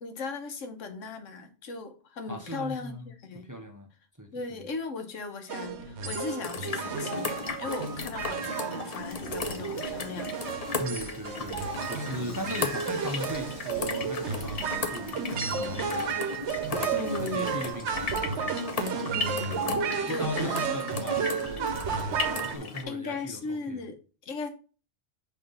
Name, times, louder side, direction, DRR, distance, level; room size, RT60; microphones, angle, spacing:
voice 1, 0.0-3.5 4.3-10.3 16.9-17.6 19.1-21.2 22.9-24.5, left 3 dB, 85° left, 1.3 m, -37 dB
voice 2, 2.3-3.1 3.3-3.9 4.2-4.7 10.8-16.2 16.7-19.2 19.8-21.8 22.3-23.9, equal, 20° right, 0.6 m, -39 dB
sound 1, 5.5-22.6, right 6 dB, 70° right, 1.0 m, -32 dB
sound 2, 6.4-22.8, left 4 dB, 40° left, 0.6 m, -36 dB
Dishes pots and pans / Frying (food), 9.0-18.2, equal, 60° left, 1.4 m, -49 dB
5.7 x 3.2 x 5.3 m
omnidirectional pair, 1.2 m